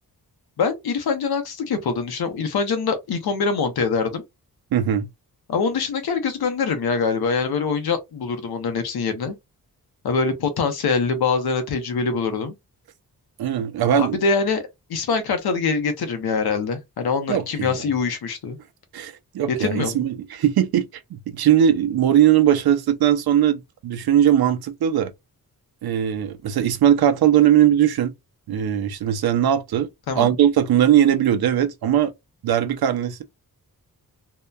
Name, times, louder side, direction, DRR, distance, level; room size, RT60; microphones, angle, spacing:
voice 1, 0.6-4.2 5.5-9.3 10.0-12.5 14.0-14.6 14.9-18.6 19.6-20.0 30.1-30.3, left 5 dB, 90° left, 0.8 m, -24 dB
voice 2, 4.7-5.1 13.4-14.2 17.3-17.8 18.9-25.1 25.8-28.1 28.5-29.9 30.2-32.1 32.4-33.2, right 10 dB, 80° right, 0.5 m, -19 dB
2.8 x 2.2 x 2.2 m
wide cardioid pair, 165°, 36 cm